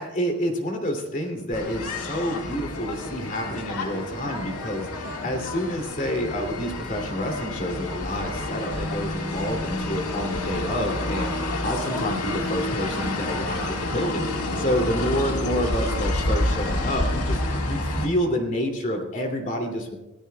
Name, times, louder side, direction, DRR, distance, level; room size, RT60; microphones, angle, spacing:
voice 1, 0.0-20.0, equal, 35° left, 3 dB, 2.7 m, -28 dB
sound 1, 1.5-18.1, left 2 dB, 85° left, 1.9 m, -29 dB
23.0 x 16.0 x 2.3 m, 1.1 s
head